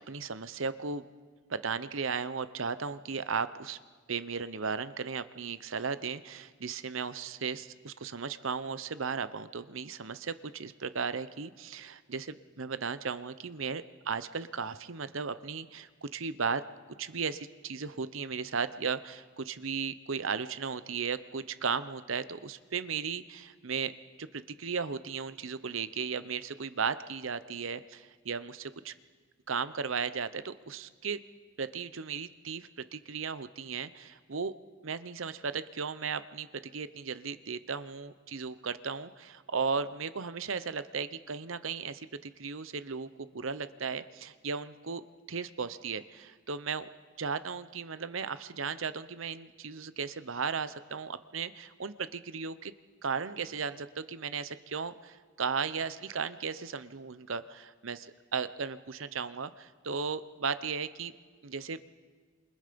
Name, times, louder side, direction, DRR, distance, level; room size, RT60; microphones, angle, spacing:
voice 1, 0.1-1.1 1.5-3.8 4.1-16.6 16.9-23.9 24.2-28.9 29.5-31.2 31.6-34.5 34.8-46.9 47.2-52.7 53.0-61.1 61.4-61.8, right 5 dB, 70° right, 14 dB, 0.8 m, -36 dB
28.5 x 27.5 x 5.3 m, 1.6 s
head